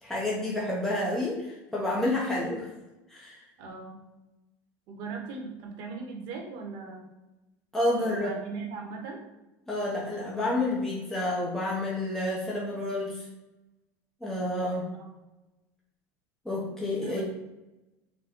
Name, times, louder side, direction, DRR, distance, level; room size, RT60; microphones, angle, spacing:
voice 1, 0.0-2.7 3.1-3.4 7.7-8.3 9.7-13.3 14.2-14.9 16.4-17.2, left 1 dB, 5° left, -5 dB, 0.7 m, -29 dB
voice 2, 3.6-4.0 4.9-7.0 8.0-9.2 14.9-15.1 17.0-17.2, right 4 dB, 60° right, 1 dB, 1.0 m, -39 dB
4.0 x 2.2 x 3.5 m, 1.0 s
supercardioid pair, 135°, 9 cm